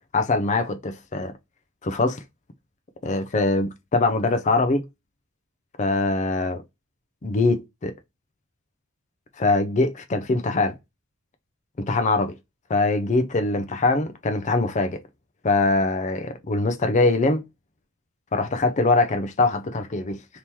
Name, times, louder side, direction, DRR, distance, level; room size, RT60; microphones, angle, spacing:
voice 1, 0.1-1.3 1.8-2.2 3.0-4.8 5.8-6.6 7.2-7.9 9.4-10.7 11.8-12.3 12.7-15.0 15.4-17.4 18.3-20.2, left 3 dB, 35° left, 0.5 m, -22 dB
2.9 x 2.9 x 3.5 m
head